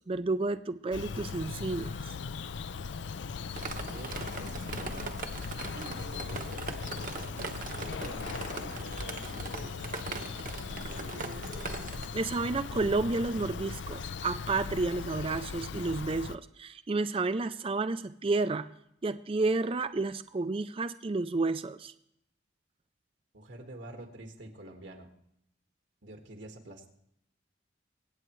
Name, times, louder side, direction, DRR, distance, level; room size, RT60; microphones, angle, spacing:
voice 1, 0.0-2.0 12.1-18.7 19.0-21.9, right 3 dB, 30° right, 12 dB, 0.4 m, -31 dB
Bird vocalization bird call bird song, 0.9-16.3, left 5 dB, 70° left, 0.5 m, -39 dB
Drip, 3.6-12.1, right 3 dB, 45° right, 1.0 m, -40 dB
voice 2, 3.7-5.3 5.6-11.5 23.3-25.1 26.0-26.9, right 1 dB, 70° right, 3 dB, 1.8 m, -48 dB
24.0 x 8.9 x 3.1 m, 0.77 s
head